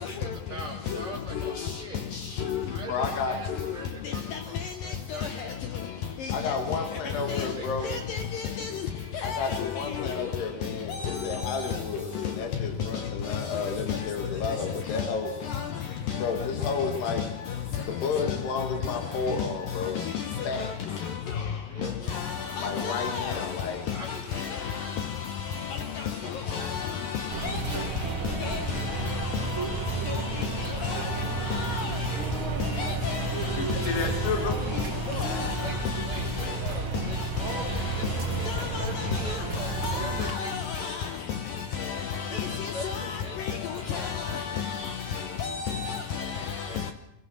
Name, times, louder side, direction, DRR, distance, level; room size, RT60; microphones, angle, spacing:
voice 1, 0.0-2.0 2.7-4.6 4.8-5.6 7.1-7.9 21.7-22.2 23.9-24.6 26.2-26.6 34.0-34.7 35.6-35.8 36.0-38.9 39.2-40.5 40.8-41.2 42.3-44.4 46.7-46.9, right 2 dB, 30° right, 4.2 m, -42 dB
voice 2, 2.9-3.4 6.3-7.9 9.2-15.3 16.2-17.3 17.8-20.0 20.4-20.7 22.6-23.9 24.3-24.4 33.6-34.6, left 5 dB, 65° left, 3.8 m, -31 dB
voice 3, 7.9-8.7 9.2-9.4 11.1-11.2 13.9-14.0 22.1-22.2 22.6-23.5 24.4-24.5 26.5-27.6 28.4-28.8 30.1-30.2 30.8-31.1 31.5-31.9 32.8-33.3 35.2-35.5 37.5-37.6 38.5-38.9 39.3-39.4 39.8-41.0 41.8-42.0 42.3-43.2 43.9-44.8 45.4-46.3, left 7 dB, 90° left, 2.0 m, -31 dB
sound 1, 27.3-40.3, right 6 dB, 80° right, 1.1 m, -32 dB
25.5 x 21.5 x 6.4 m
omnidirectional pair, 5.5 m